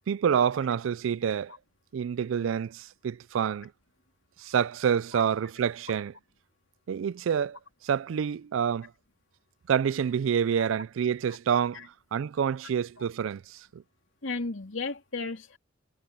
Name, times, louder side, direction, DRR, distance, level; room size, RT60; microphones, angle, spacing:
voice 1, 0.1-1.5 1.9-3.7 4.4-6.1 6.9-7.6 7.8-8.9 9.7-13.8, right 7 dB, 75° right, 0.3 m, -27 dB
voice 2, 14.2-15.6, left 3 dB, 70° left, 2.8 m, -34 dB
head